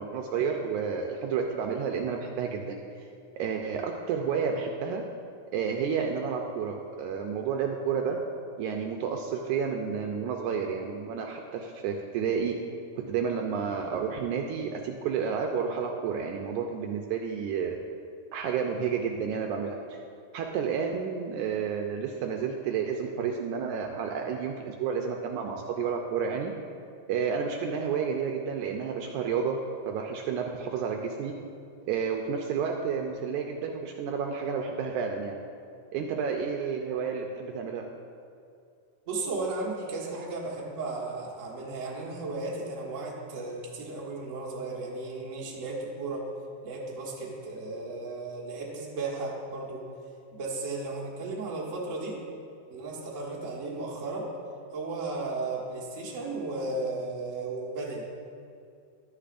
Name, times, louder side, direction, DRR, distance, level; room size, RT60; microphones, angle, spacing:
voice 1, 0.0-3.1 3.4-5.0 5.5-8.2 8.6-12.6 13.1-17.8 18.3-20.0 20.3-26.5 27.1-29.6 29.9-31.3 31.9-35.4 35.9-37.8, right 6 dB, 80° right, 2 dB, 1.8 m, -30 dB
voice 2, 39.1-46.3 46.6-49.8 50.3-52.2 52.7-54.3 54.7-58.0, right 3 dB, 50° right, -4 dB, 0.9 m, -35 dB
12.0 x 10.0 x 2.5 m, 2.4 s
omnidirectional pair, 3.8 m